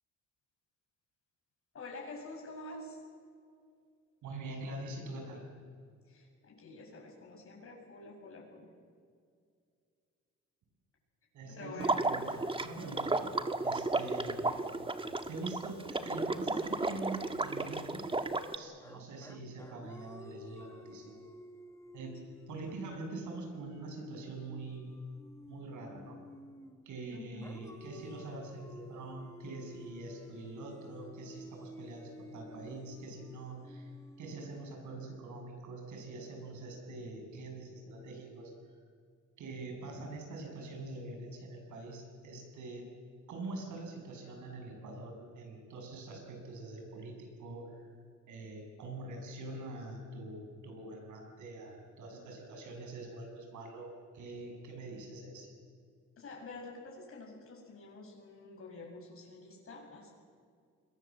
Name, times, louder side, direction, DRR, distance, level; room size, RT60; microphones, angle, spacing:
voice 1, 1.7-3.0 6.0-8.7 11.5-12.0 14.3-14.6 27.1-27.5 56.2-60.1, left 2 dB, 45° left, -2 dB, 7.3 m, -48 dB
voice 2, 4.2-5.4 11.3-13.3 13.6-14.4 15.3-18.1 18.6-21.2 21.9-22.2 22.5-25.0 25.4-26.2 26.9-33.9 34.2-38.8 39.4-42.8 43.3-47.9 48.3-55.5, right 2 dB, 80° right, 3 dB, 7.5 m, -44 dB
Water / Liquid, 11.8-18.6, right 2 dB, 15° right, 1.7 m, -33 dB
sound 1, 18.8-26.9 27.4-35.5, left 1 dB, 10° left, 2.0 m, -52 dB
29.0 x 21.5 x 7.6 m, 2.2 s
cardioid pair, 90°, 30 cm